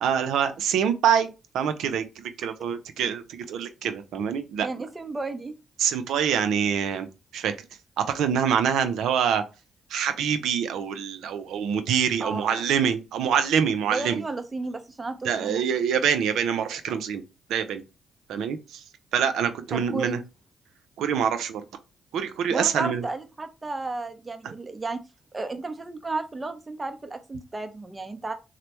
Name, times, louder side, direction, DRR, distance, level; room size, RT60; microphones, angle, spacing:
voice 1, 0.0-2.1 2.4-4.7 5.8-7.1 7.3-7.5 8.0-9.4 9.9-14.2 15.2-17.2 17.5-17.8 18.3-18.8 19.1-20.2 21.0-21.6 22.1-23.0 24.4-24.5, right 8 dB, 80° right, 0.4 m, -25 dB
voice 2, 4.6-5.5 12.2-12.6 13.9-15.6 19.7-20.2 22.5-25.0 25.3-28.3, right 3 dB, 25° right, 0.6 m, -33 dB
3.2 x 2.1 x 2.8 m
supercardioid pair, 60°, 0 cm